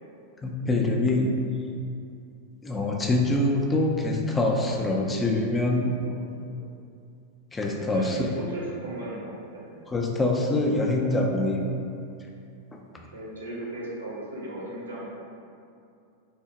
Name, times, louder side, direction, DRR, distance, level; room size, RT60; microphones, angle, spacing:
voice 1, 0.4-1.3 2.6-5.9 7.5-8.3 9.9-11.6, left 2 dB, 15° left, 0 dB, 0.3 m, -24 dB
voice 2, 4.6-5.5 5.9-6.6 7.9-9.7 13.0-15.1, right 1 dB, 75° right, -6 dB, 0.6 m, -37 dB
3.4 x 2.0 x 2.8 m, 2.5 s
figure-of-eight pair, 90°, 0 cm